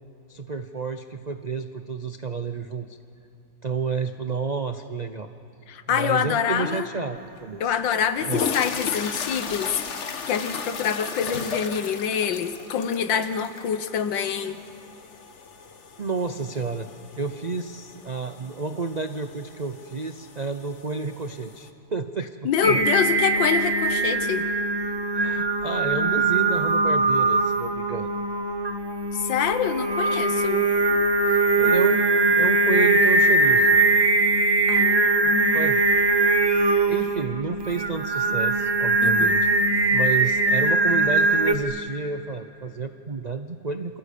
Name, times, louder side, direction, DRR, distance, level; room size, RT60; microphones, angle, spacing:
voice 1, 0.3-3.0 3.6-5.3 5.9-7.8 8.3-8.5 16.0-16.9 17.1-22.4 22.7-22.9 25.1-28.1 31.2-33.8 35.2-35.8 36.9-39.5 39.9-44.0, right 4 dB, 85° right, 8 dB, 0.3 m, -30 dB
voice 2, 5.7-6.9 7.6-14.6 22.5-24.5 29.1-31.0 34.7-35.9 39.0-39.3, left 7 dB, 85° left, 11 dB, 1.8 m, -26 dB
sound 1, 7.4-7.5 8.0-21.7, left 5 dB, 45° left, 1.3 m, -36 dB
Singing, 22.6-41.5, right 3 dB, 20° right, 0.6 m, -21 dB
28.0 x 25.0 x 8.4 m, 2.8 s
omnidirectional pair, 1.9 m